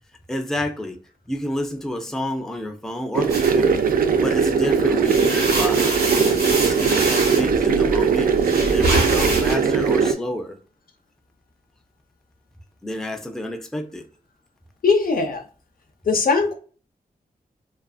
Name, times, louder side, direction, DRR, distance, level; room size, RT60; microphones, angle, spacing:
voice 1, 0.3-1.0 1.3-8.3 8.7-10.6 12.8-14.0, left 1 dB, 5° left, 0.4 m, -30 dB
sound 1, 3.1-10.1, right 6 dB, 65° right, 0.4 m, -20 dB
sound 2, 3.3-4.5 4.9-9.6, right 2 dB, 90° right, 1.0 m, -25 dB
voice 2, 14.8-15.4 16.1-16.5, left 4 dB, 65° left, 0.6 m, -19 dB
2.4 x 2.4 x 2.3 m
cardioid pair, 60°, 16 cm